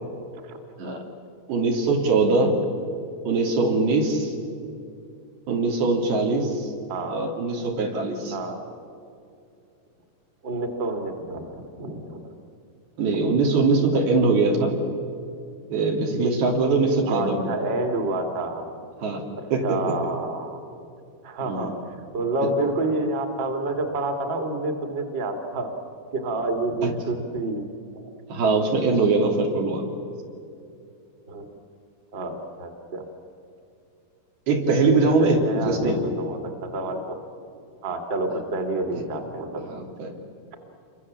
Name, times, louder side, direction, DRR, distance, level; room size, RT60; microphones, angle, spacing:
voice 1, 1.5-2.5 3.3-4.3 5.5-6.7 7.1-8.3 13.0-14.8 15.7-17.5 19.0-19.2 19.5-19.8 21.5-21.7 26.8-26.9 28.3-29.9 34.5-36.0 39.7-40.1, right 3 dB, 75° right, 1 dB, 4.7 m, -22 dB
voice 2, 6.9-7.2 8.3-8.6 10.4-12.4 13.1-13.4 17.1-18.7 19.4-20.6 21.2-25.7 26.1-27.7 31.3-31.5 32.1-33.0 34.8-34.9 35.2-37.2 37.8-39.8, right 2 dB, 35° right, 4 dB, 2.3 m, -29 dB
28.5 x 23.5 x 7.4 m, 2.5 s
omnidirectional pair, 4.6 m